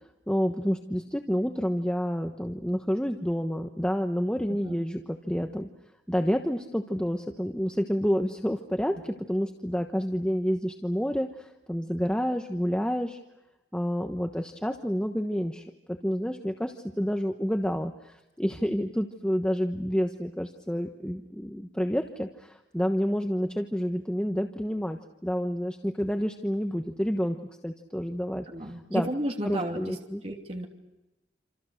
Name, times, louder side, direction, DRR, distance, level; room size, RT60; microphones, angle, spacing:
voice 1, 0.3-5.7 6.1-13.2 13.7-27.4 27.6-29.1 29.4-30.2, equal, 5° left, 4 dB, 1.2 m, -29 dB
voice 2, 28.5-30.7, right 1 dB, 35° right, 1 dB, 3.1 m, -33 dB
28.0 x 27.5 x 6.6 m, 0.99 s
head